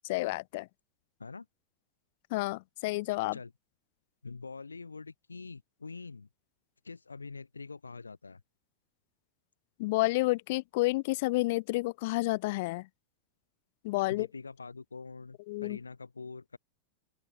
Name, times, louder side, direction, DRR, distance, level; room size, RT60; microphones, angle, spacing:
voice 1, 0.0-0.7 2.3-3.4 9.8-12.9 13.8-14.3 15.5-15.8, left 22 dB, 50° left, 0.9 m, -30 dB
voice 2, 4.2-6.3 6.8-8.4 14.1-16.6, left 4 dB, 75° left, 1.2 m, -44 dB
open air
figure-of-eight pair, 90°, 0 cm